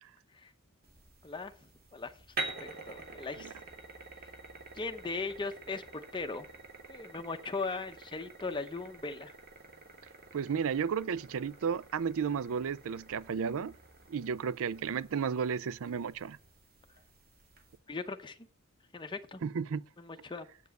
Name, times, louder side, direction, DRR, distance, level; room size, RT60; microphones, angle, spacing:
sound 1, 0.8-17.8, right 3 dB, 45° right, 2.4 m, -48 dB
voice 1, 2.9-3.6 4.7-5.8 6.1-6.5 6.9-9.3 17.9-18.4 18.9-19.4 20.0-20.5, left 3 dB, 20° left, 0.7 m, -38 dB
voice 2, 10.3-13.7 14.1-16.4 19.4-19.8, right 6 dB, 65° right, 0.4 m, -33 dB
8.0 x 7.2 x 6.4 m
head